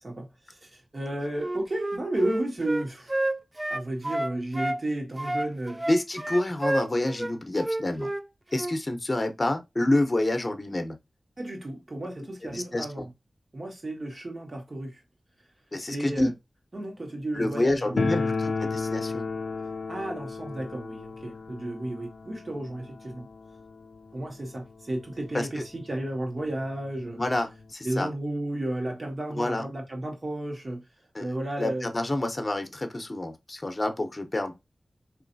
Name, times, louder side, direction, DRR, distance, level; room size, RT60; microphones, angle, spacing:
voice 1, 0.0-3.2 3.7-5.9 11.4-13.1 13.5-15.0 15.8-16.3 16.7-18.3 19.9-23.3 24.1-27.2 27.8-30.8 31.2-31.9, right 1 dB, 50° right, 1.8 m, -33 dB
Wind instrument woodwind instrument, 1.4-4.8 5.2-8.2 8.5-8.8, right 1 dB, 20° right, 0.3 m, -30 dB
voice 2, 5.9-8.1 8.5-10.9 12.5-13.0 15.7-16.3 17.3-19.2 25.3-25.6 27.2-28.1 29.3-29.7 31.1-31.3 31.6-34.5, left 1 dB, 35° left, 0.9 m, -28 dB
sound 1, 18.0-24.7 24.9-25.0 25.3-25.4 26.1-26.2 26.5-27.7, left 4 dB, 80° left, 0.4 m, -33 dB
4.2 x 3.1 x 2.7 m
wide cardioid pair, 70°, 0 cm